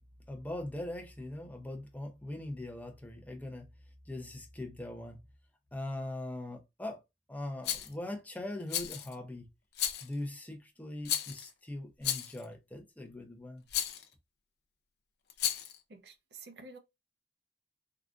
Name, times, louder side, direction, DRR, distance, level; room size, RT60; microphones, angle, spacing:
voice 1, 0.3-3.7 4.1-5.2 5.7-7.0 7.3-9.5 10.0-13.6, left 1 dB, 10° left, 0.6 m, -41 dB
Rattle, 7.6-7.9 8.7-9.1 9.8-10.1 11.1-11.5 12.0-12.4 13.7-14.0 15.3-15.8, left 10 dB, 60° left, 0.5 m, -33 dB
voice 2, 15.9-16.8, right 3 dB, 65° right, 0.5 m, -50 dB
3.7 x 2.4 x 2.3 m
head